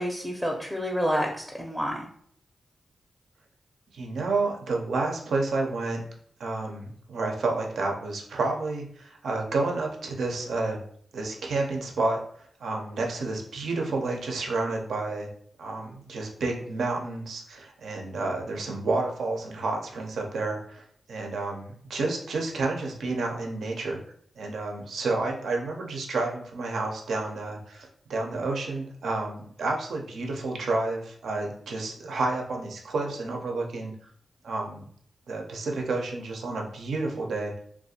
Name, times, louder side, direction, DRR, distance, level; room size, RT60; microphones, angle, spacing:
voice 1, 0.0-2.1, equal, 5° right, 0 dB, 0.5 m, -29 dB
voice 2, 3.9-6.0 6.4-10.8 11.1-12.2 12.6-15.3 15.6-24.0 24.3-33.9 34.4-34.9 35.3-37.5, right 3 dB, 80° right, 1 dB, 0.5 m, -30 dB
2.4 x 2.2 x 2.7 m, 0.62 s
supercardioid pair, 45°, 0 cm